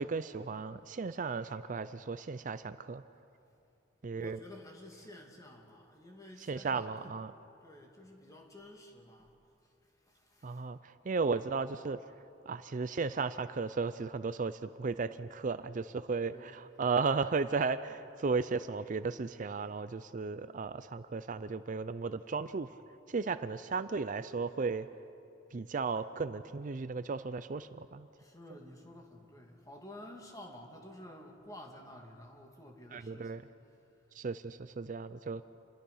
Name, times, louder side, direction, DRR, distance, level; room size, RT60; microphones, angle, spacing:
voice 1, 0.0-3.0 4.0-4.4 6.5-7.3 10.4-12.0 12.5-22.7 23.1-24.9 25.5-28.1 32.9-33.4 34.1-35.4, right 4 dB, 45° right, 13 dB, 0.5 m, -35 dB
voice 2, 4.1-7.2 7.6-9.3 9.6-10.6 16.2-16.5 28.2-33.5, left 1 dB, 20° left, 1 dB, 2.6 m, -52 dB
28.5 x 22.0 x 5.6 m, 2.7 s
head